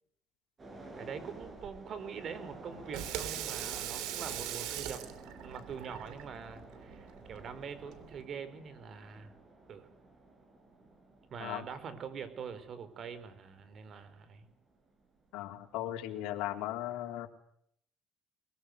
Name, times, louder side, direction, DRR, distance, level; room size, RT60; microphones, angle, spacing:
sound 1, 0.6-15.2 15.5-15.6, right 2 dB, 30° right, 7.7 m, -52 dB
voice 1, 0.9-5.0 5.4-9.4 9.7-9.9 11.3-14.5, right 6 dB, 50° right, 13 dB, 4.7 m, -44 dB
Water tap faucet / Sink (filling or washing), 2.7-8.2, right 11 dB, 85° right, 3.2 m, -41 dB
voice 2, 15.3-17.3, left 13 dB, 85° left, 3 dB, 3.7 m, -37 dB
22.5 x 22.0 x 8.3 m, 0.68 s
cardioid pair, 110°, 0 cm